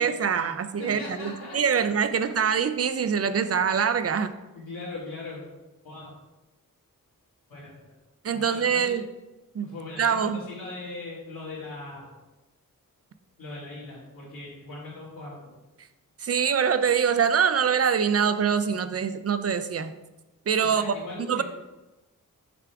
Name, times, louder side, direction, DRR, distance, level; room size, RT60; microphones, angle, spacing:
voice 1, 0.0-4.3 8.2-9.0 9.5-9.7 10.0-10.4 16.2-19.9 20.5-20.9 21.2-21.4, right 7 dB, 45° right, 11 dB, 0.5 m, -24 dB
voice 2, 0.8-2.0 4.5-5.4 5.8-6.1 7.5-7.9 8.3-9.0 9.6-12.1 13.4-15.3 20.6-21.4, left 2 dB, 85° left, -10 dB, 2.1 m, -39 dB
6.9 x 5.8 x 3.6 m, 1.1 s
wide cardioid pair, 130°, 34 cm